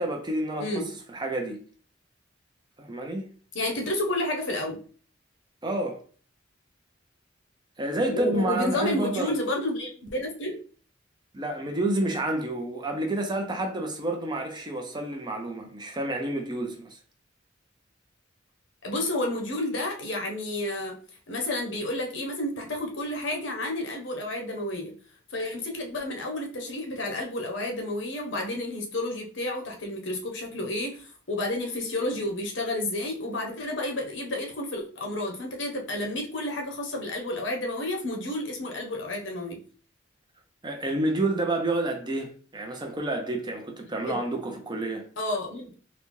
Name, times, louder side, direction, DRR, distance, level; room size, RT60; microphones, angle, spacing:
voice 1, 0.0-1.6 2.8-3.3 5.6-6.0 7.8-9.3 11.3-17.0 40.6-45.1, right 1 dB, 25° right, 0.6 m, -29 dB
voice 2, 3.5-4.8 8.1-10.6 18.8-21.0 21.3-24.9 25.3-39.6 44.1-44.2 45.2-45.7, left 1 dB, 70° left, 0.9 m, -31 dB
3.9 x 2.2 x 3.1 m
head